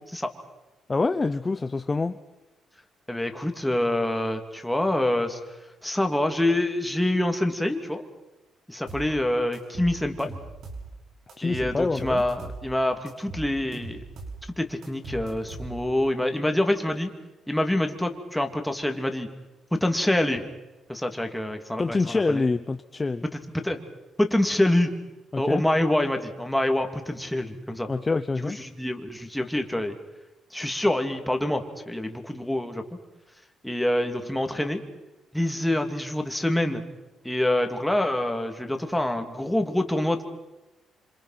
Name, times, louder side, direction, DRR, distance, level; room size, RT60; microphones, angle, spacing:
voice 1, 0.9-2.2 11.4-12.2 21.8-23.2 25.3-25.6 27.9-28.6, left 3 dB, 25° left, 10 dB, 0.8 m, -26 dB
voice 2, 3.1-5.4 5.8-8.0 8.7-10.4 11.4-14.0 14.6-17.1 17.5-19.3 19.7-20.5 20.9-22.4 23.3-23.8 24.2-24.9 25.4-27.9 28.4-29.9 30.5-32.8 33.6-34.8 35.3-36.8 37.2-40.2, left 1 dB, 5° left, 5 dB, 2.9 m, -26 dB
sound 1, 8.9-9.1 9.5-10.9 11.3-12.6 13.1-14.4 14.8-16.0, right 3 dB, 75° right, 5.6 m, -39 dB
26.5 x 26.5 x 6.0 m, 1.0 s
cardioid pair, 90°, 0 cm